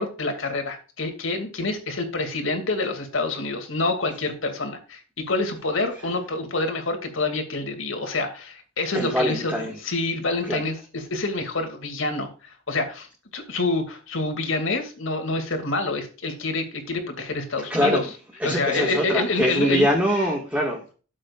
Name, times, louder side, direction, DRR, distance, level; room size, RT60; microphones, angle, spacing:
voice 1, 0.0-12.3 12.7-13.1 13.3-18.1 18.4-19.9, left 3 dB, 75° left, 2.5 m, -27 dB
voice 2, 8.9-9.7 10.5-10.6 17.7-18.0 18.4-20.9, equal, 5° right, 1.8 m, -23 dB
13.0 x 7.6 x 2.5 m
head